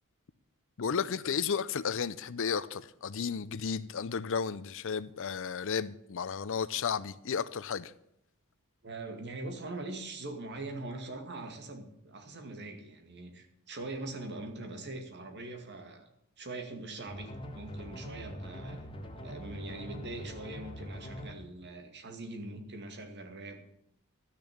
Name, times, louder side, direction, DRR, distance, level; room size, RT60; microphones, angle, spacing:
voice 1, 0.8-7.9, left 6 dB, 60° left, 0.5 m, -33 dB
voice 2, 8.8-16.1 16.4-18.8 19.2-23.6, right 2 dB, 50° right, 2.2 m, -42 dB
sound 1, 17.1-21.3, equal, 25° left, 1.5 m, -43 dB
12.0 x 6.8 x 8.7 m
head